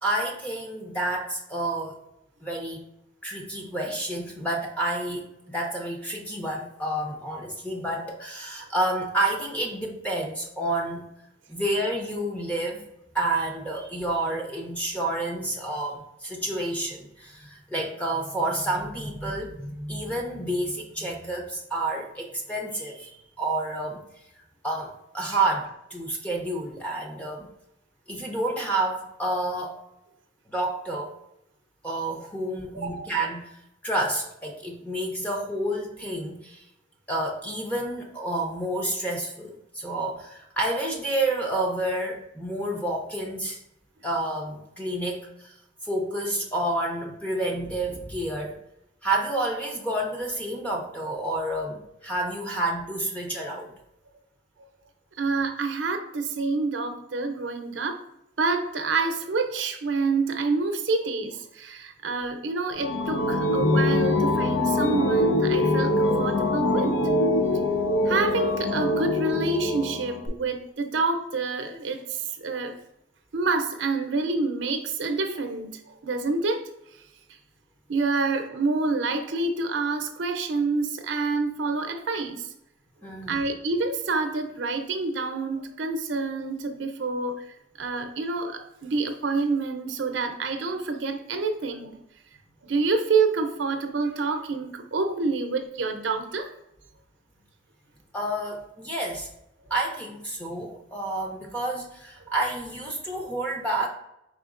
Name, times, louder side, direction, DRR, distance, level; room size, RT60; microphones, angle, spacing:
voice 1, 0.0-2.0 2.4-2.9 3.2-11.0 11.5-12.8 13.1-24.0 24.6-27.5 28.1-29.8 30.5-31.1 31.8-33.6 33.8-36.7 37.1-43.6 44.0-45.5 45.8-48.6 49.0-53.7 83.0-83.4 98.1-99.3 99.7-103.9, right 1 dB, 10° left, -1 dB, 0.5 m, -29 dB
voice 2, 55.2-58.0 58.4-67.0 68.1-72.8 73.3-76.6 77.9-82.5 83.3-92.0 92.6-96.5, right 3 dB, 75° right, 6 dB, 0.6 m, -27 dB
sound 1, 62.7-70.3, left 1 dB, 85° left, 0.6 m, -24 dB
4.9 x 3.5 x 2.4 m, 0.83 s
head